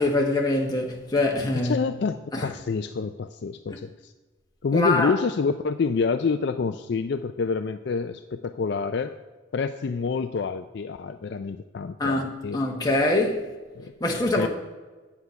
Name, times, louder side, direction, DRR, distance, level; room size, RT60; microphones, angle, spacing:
voice 1, 0.0-1.8 2.3-2.5 4.7-5.2 12.0-13.5 14.0-14.5, left 2 dB, 20° left, 1.3 m, -24 dB
voice 2, 1.6-2.2 2.4-4.1 4.6-9.1 9.5-12.6 13.8-13.9 14.4-14.5, left 5 dB, 55° left, 0.4 m, -27 dB
9.6 x 8.0 x 5.7 m
head